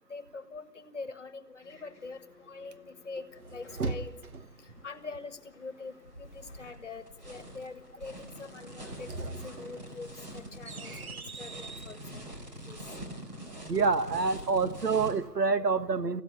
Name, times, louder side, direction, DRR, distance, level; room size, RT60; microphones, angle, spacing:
voice 1, 0.1-3.2 3.5-4.1 4.8-12.2 12.7-12.8, left 4 dB, 45° left, 11 dB, 1.8 m, -44 dB
sound 1, 1.6-11.2, left 3 dB, 5° left, 6.8 m, -60 dB
sound 2, 3.2-4.7 8.7-12.0, right 3 dB, 60° right, 1.3 m, -40 dB
sound 3, 6.0-15.1, equal, 25° right, 4.2 m, -45 dB
voice 2, 13.7-16.2, right 4 dB, 80° right, 11 dB, 1.7 m, -27 dB
26.5 x 16.0 x 8.2 m, 1.0 s
figure-of-eight pair, 170°, 48 cm